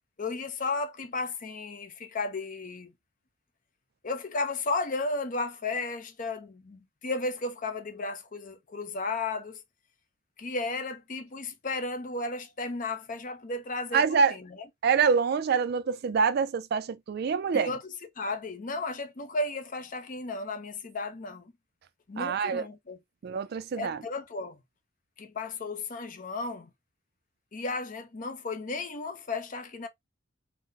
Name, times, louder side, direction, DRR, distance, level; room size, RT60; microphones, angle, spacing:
voice 1, 0.2-2.9 4.0-9.6 10.4-14.7 17.5-21.5 22.1-23.0 23.8-24.6 25.2-26.7 27.5-29.9, left 3 dB, 40° left, 0.5 m, -34 dB
voice 2, 13.9-14.4 14.8-17.7 22.2-22.7 23.2-24.0, right 5 dB, 50° right, 0.3 m, -26 dB
3.9 x 2.1 x 2.6 m
head